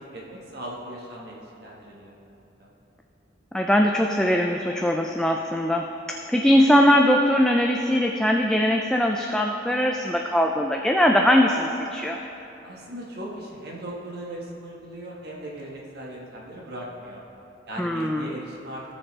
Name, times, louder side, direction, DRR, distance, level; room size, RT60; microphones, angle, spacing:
voice 1, 0.0-2.2 2.6-2.7 12.6-17.2 17.7-18.8, right 1 dB, 55° right, -3 dB, 1.5 m, -38 dB
voice 2, 3.5-12.2 17.8-18.3, equal, 5° left, 1 dB, 0.3 m, -21 dB
17.5 x 6.5 x 3.3 m, 2.9 s
head